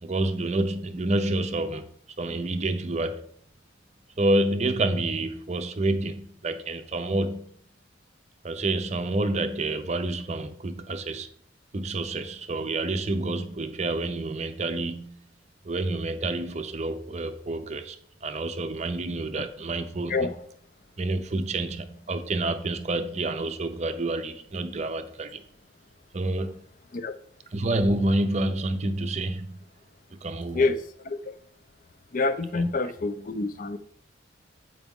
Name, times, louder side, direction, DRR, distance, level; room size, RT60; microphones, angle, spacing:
voice 1, 0.0-1.9 2.2-3.3 4.2-7.5 8.4-11.3 11.7-15.2 15.6-20.3 21.0-25.4 26.1-26.6 27.5-29.6 30.1-30.7 32.6-32.7, right 2 dB, 35° right, 0.5 m, -28 dB
voice 2, 30.5-31.3 32.1-33.8, left 3 dB, 45° left, 0.4 m, -27 dB
8.1 x 4.9 x 3.6 m
head